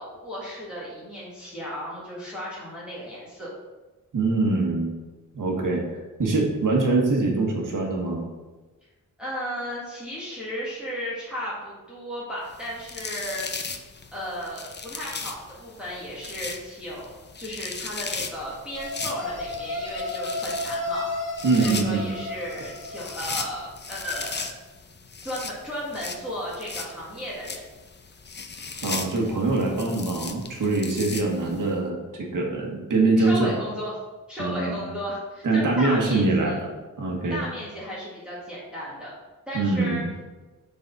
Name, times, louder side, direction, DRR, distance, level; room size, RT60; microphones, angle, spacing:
voice 1, 0.0-3.5 9.2-13.5 14.1-21.1 21.5-24.6 25.2-27.7 33.2-34.0 34.3-36.3 37.3-39.1 39.5-40.0, equal, 5° right, -8 dB, 1.8 m, -34 dB
voice 2, 4.1-4.9 5.3-5.8 6.2-8.2 21.4-22.0 28.8-33.5 34.4-34.8 35.4-36.7 37.0-37.4 39.5-40.1, right 3 dB, 70° right, 0 dB, 1.6 m, -23 dB
sound 1, 12.5-31.7, left 4 dB, 35° left, 0.6 m, -38 dB
sound 2, 18.7-23.7, left 2 dB, 75° left, 1.1 m, -33 dB
7.0 x 4.2 x 5.4 m, 1.2 s
wide cardioid pair, 155°, 32 cm